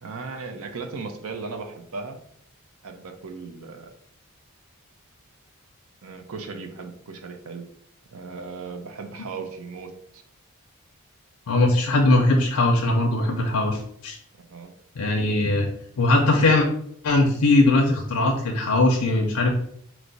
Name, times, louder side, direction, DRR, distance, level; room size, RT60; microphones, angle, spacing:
voice 1, 0.0-2.2 2.8-3.9 6.0-7.7 8.1-10.2 14.4-14.7, right 4 dB, 75° right, 5 dB, 0.5 m, -37 dB
voice 2, 11.5-14.2 15.0-15.7 16.0-16.7 17.0-19.5, left 2 dB, 85° left, 1 dB, 0.5 m, -20 dB
4.6 x 2.0 x 3.9 m, 0.67 s
head